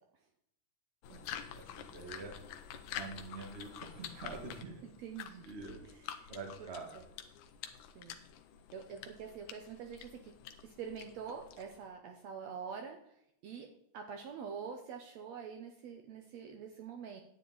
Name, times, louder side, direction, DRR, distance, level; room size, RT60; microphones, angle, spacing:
sound 1, 1.0-11.9, left 9 dB, 75° left, 2.1 m, -48 dB
voice 1, 1.5-2.3 2.9-4.8 5.4-5.8 6.3-6.9, right 4 dB, 30° right, 2 dB, 1.3 m, -46 dB
voice 2, 4.8-5.5 6.2-6.3 8.0-8.2 8.7-10.4 10.6-13.0 13.4-17.2, right 6 dB, 70° right, 3 dB, 1.8 m, -45 dB
10.0 x 9.3 x 3.9 m, 0.76 s
omnidirectional pair, 3.6 m